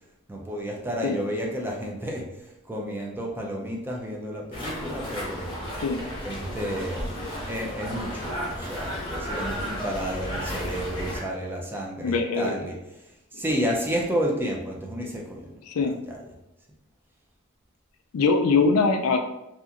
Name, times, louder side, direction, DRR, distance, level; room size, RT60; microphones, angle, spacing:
voice 1, 0.3-2.3 2.7-5.6 6.2-12.8 13.3-16.3, equal, 10° right, -1 dB, 0.4 m, -31 dB
sound 1, 4.5-11.2, equal, 25° left, 0.8 m, -33 dB
voice 2, 12.0-12.6 15.7-16.0 18.1-19.2, left 4 dB, 80° left, 5 dB, 0.4 m, -22 dB
2.8 x 2.4 x 2.4 m, 0.89 s
head